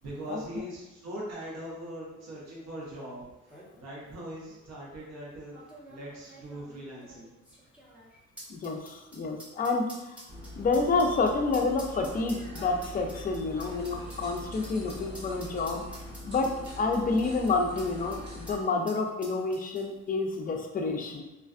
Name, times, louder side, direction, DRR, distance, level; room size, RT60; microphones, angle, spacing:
voice 1, 0.0-7.3, right 1 dB, 60° right, -5 dB, 0.9 m, -41 dB
sound 1, 3.0-3.1 3.3-3.7 4.5-4.6 5.5-18.2 18.5-18.6 18.9-20.1 20.3-20.4, equal, 5° right, 0.7 m, -49 dB
voice 2, 8.5-10.2 10.6-15.8 16.3-16.5 16.8-21.2, left 3 dB, 30° left, 3 dB, 0.4 m, -29 dB
sound 2, 10.3-18.6, left 1 dB, 35° right, 1.0 m, -43 dB
2.4 x 2.3 x 2.4 m, 0.99 s
cardioid pair, 90°, 30 cm